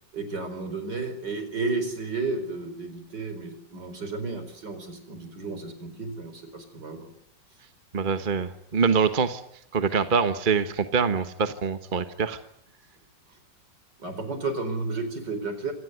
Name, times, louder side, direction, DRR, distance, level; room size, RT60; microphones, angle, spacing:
voice 1, 0.1-7.1 14.0-15.7, right 3 dB, 70° right, 9 dB, 5.2 m, -32 dB
voice 2, 7.9-9.4 9.7-12.4, right 5 dB, 30° right, 9 dB, 1.3 m, -24 dB
26.0 x 18.5 x 9.6 m, 0.74 s
omnidirectional pair, 2.0 m